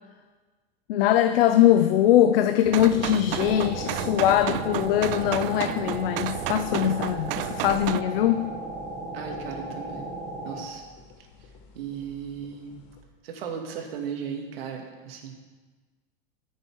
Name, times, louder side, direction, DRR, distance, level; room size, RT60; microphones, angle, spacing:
voice 1, 0.9-8.5, left 11 dB, 80° left, 9 dB, 0.7 m, -22 dB
sound 1, 2.6-13.0, left 5 dB, 60° left, 1.7 m, -44 dB
sound 2, 2.7-8.0, right 16 dB, 70° right, 0.4 m, -32 dB
sound 3, 3.4-10.6, right 2 dB, 20° right, 1.6 m, -36 dB
voice 2, 9.1-10.2 10.4-10.9 11.8-12.8 13.2-15.3, right 7 dB, 90° right, 3 dB, 2.0 m, -36 dB
13.0 x 6.8 x 4.7 m, 1.4 s
supercardioid pair, 145°, 29 cm